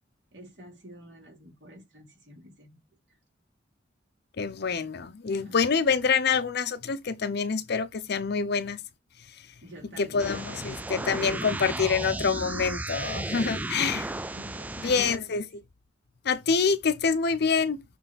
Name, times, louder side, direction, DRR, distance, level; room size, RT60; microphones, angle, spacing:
voice 1, 0.3-2.8 3.1-3.2 5.4-5.7 9.6-10.9 13.3-15.3, equal, 70° right, 3.0 m, -49 dB
voice 2, 4.4-8.8 9.3-9.5 10.0-14.1 14.8-15.4 16.2-17.8, left 5 dB, 60° left, 0.7 m, -26 dB
sound 1, 10.2-15.2, right 2 dB, 10° right, 0.3 m, -34 dB
7.0 x 3.3 x 4.1 m
head